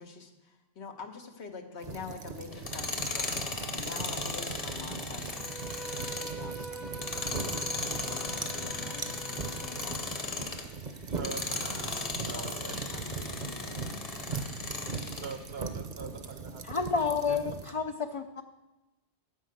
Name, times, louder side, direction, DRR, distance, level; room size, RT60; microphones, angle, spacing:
voice 1, 0.0-3.5 3.7-5.3 5.7-7.1 7.7-10.4 11.1-11.3 12.2-13.3, left 5 dB, 80° left, 4 dB, 1.4 m, -46 dB
sound 1, 1.8-17.7, right 4 dB, 45° right, 0.8 m, -40 dB
Tools, 2.5-10.7 11.1-15.4, left 3 dB, 35° left, 1.0 m, -37 dB
Bowed string instrument, 5.3-10.3, right 3 dB, ahead, 0.6 m, -44 dB
voice 2, 11.0-13.3 14.3-14.6 15.2-16.9 17.3-17.4, right 5 dB, 70° right, 9 dB, 1.0 m, -44 dB
voice 3, 16.6-18.4, left 5 dB, 55° left, 6 dB, 0.3 m, -30 dB
9.8 x 5.7 x 8.0 m, 1.0 s
omnidirectional pair, 1.1 m